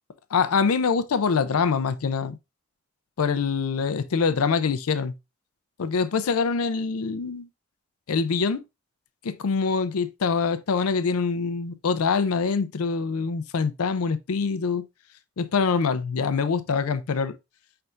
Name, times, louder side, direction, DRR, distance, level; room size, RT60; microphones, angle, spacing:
voice 1, 0.3-2.4 3.2-5.1 5.8-7.5 8.1-8.6 9.2-14.9 15.4-17.4, left 5 dB, 90° left, 0.5 m, -24 dB
5.6 x 3.4 x 2.5 m
head